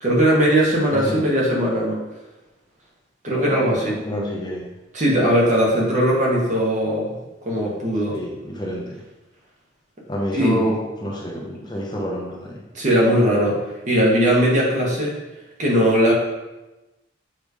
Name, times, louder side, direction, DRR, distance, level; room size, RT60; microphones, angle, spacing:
voice 1, 0.0-2.0 3.2-3.9 4.9-7.1 7.4-8.2 10.3-10.7 12.7-13.6 13.9-15.1 15.6-16.1, equal, 40° right, -3 dB, 1.6 m, -19 dB
voice 2, 0.9-1.3 3.3-4.7 8.1-8.9 10.1-12.6, equal, 20° left, -1 dB, 0.8 m, -28 dB
7.4 x 3.4 x 4.9 m, 1.0 s
head